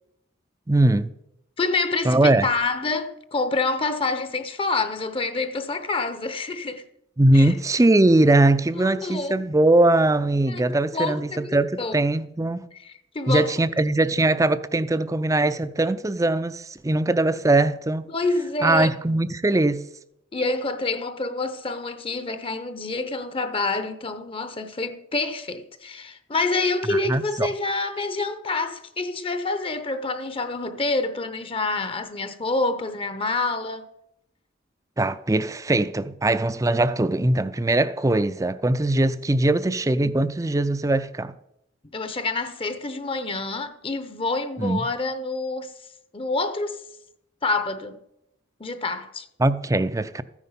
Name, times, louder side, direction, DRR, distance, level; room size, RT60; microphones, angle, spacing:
voice 1, 0.7-1.1 2.1-2.5 7.2-12.6 13.3-18.1 18.6-19.9 26.9-27.5 35.0-41.3 44.6-44.9 49.4-50.2, right 2 dB, 15° right, 0.4 m, -21 dB
voice 2, 1.6-6.9 7.3-7.6 8.8-9.4 10.5-10.7 10.9-12.0 12.7-13.5 18.1-18.9 20.3-33.9 41.9-45.7 46.1-46.8 47.4-48.0 48.6-49.3, left 3 dB, 25° left, 0.7 m, -27 dB
14.0 x 9.8 x 5.6 m
head